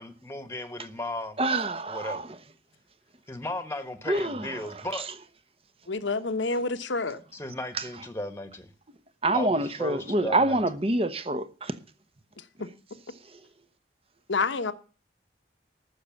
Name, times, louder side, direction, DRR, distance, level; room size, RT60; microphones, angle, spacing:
voice 1, 0.0-1.4 1.9-2.2 3.3-5.1 7.3-8.7 9.3-10.6, left 1 dB, 15° left, 1.3 m, -35 dB
voice 2, 1.4-2.2 4.1-4.4 9.2-11.7, right 2 dB, 30° right, 1.0 m, -26 dB
voice 3, 5.9-7.2 12.4-12.7 14.3-14.7, left 3 dB, 80° left, 1.1 m, -29 dB
14.5 x 6.6 x 7.1 m
head